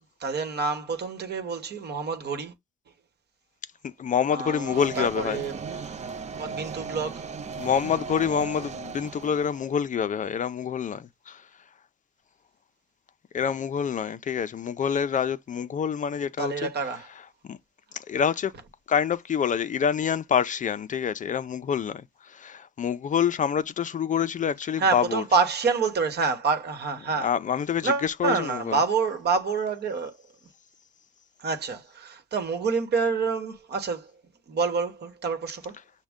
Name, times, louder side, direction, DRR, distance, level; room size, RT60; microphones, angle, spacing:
voice 1, 0.2-2.5 4.3-5.6 6.4-7.3 16.4-17.1 24.8-27.3 27.8-30.1 31.4-34.1 34.5-35.8, right 4 dB, 55° right, 1.1 m, -27 dB
voice 2, 3.8-5.4 7.6-11.5 13.3-16.7 17.5-17.6 17.9-18.5 18.9-25.2 27.2-28.8, left 7 dB, 40° left, 0.4 m, -27 dB
sound 1, 4.6-9.8, right 5 dB, 35° right, 0.5 m, -37 dB
6.2 x 2.2 x 3.5 m
cardioid pair, 90°, 20 cm